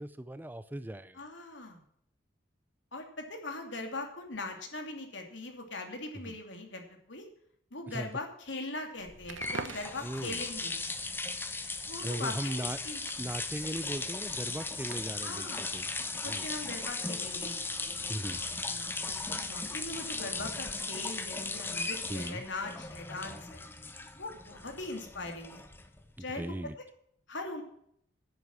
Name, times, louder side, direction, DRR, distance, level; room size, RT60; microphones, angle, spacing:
voice 1, 0.0-1.2 6.2-6.4 7.9-8.1 10.0-10.5 12.0-12.8 13.2-15.9 16.3-16.5 18.1-18.4 22.1-22.4 26.2-26.8, right 1 dB, 10° right, 14 dB, 0.4 m, -38 dB
voice 2, 1.1-1.8 2.9-7.2 7.7-10.8 11.9-13.0 15.2-15.7 16.2-17.6 18.3-23.7 24.2-25.6 26.2-26.4 27.3-27.6, left 2 dB, 75° left, 4 dB, 2.8 m, -41 dB
sound 1, 9.1-26.1, left 3 dB, 10° left, 0.8 m, -37 dB
Crackle, 9.2-15.3, right 4 dB, 90° right, 0.9 m, -48 dB
10.5 x 8.1 x 7.2 m, 0.68 s
head